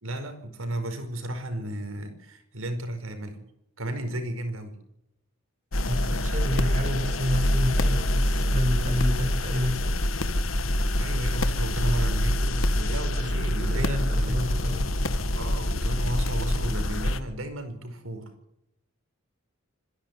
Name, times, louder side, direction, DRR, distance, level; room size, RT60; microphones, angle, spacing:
voice 1, 0.0-3.5 3.8-4.8 11.0-14.4 15.3-18.3, right 1 dB, 75° right, 7 dB, 5.0 m, -33 dB
sound 1, 5.7-17.2, left 1 dB, 75° left, 1.6 m, -25 dB
voice 2, 5.9-10.0 13.2-14.9, left 1 dB, 40° right, 4 dB, 6.3 m, -29 dB
26.0 x 11.5 x 9.6 m, 0.82 s
head